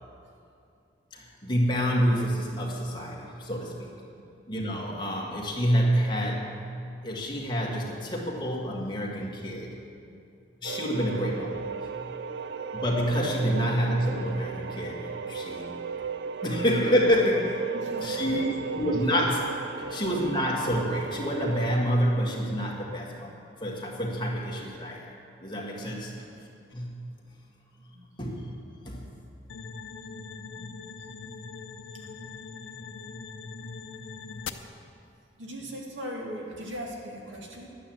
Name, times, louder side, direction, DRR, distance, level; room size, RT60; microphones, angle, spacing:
voice 1, 1.1-3.9 4.5-6.6 7.0-9.7 10.6-11.9 12.7-15.8 16.4-17.7 18.0-19.5 19.9-23.3 23.6-25.2 25.4-26.2 26.7-27.1 28.2-28.5 28.9-29.1, equal, 25° left, -2 dB, 1.9 m, -28 dB
sound 1, 10.6-21.8, right 5 dB, 60° right, 0.4 m, -36 dB
voice 2, 17.7-18.7 19.8-20.0 27.9-28.1 30.1-30.7 31.4-31.6 31.9-32.2 33.2-33.3 34.3-34.5 35.4-37.7, equal, 85° right, -1 dB, 2.1 m, -41 dB
sound 2, 29.5-34.5, left 5 dB, 90° left, 0.6 m, -41 dB
12.0 x 9.0 x 7.6 m, 2.5 s
head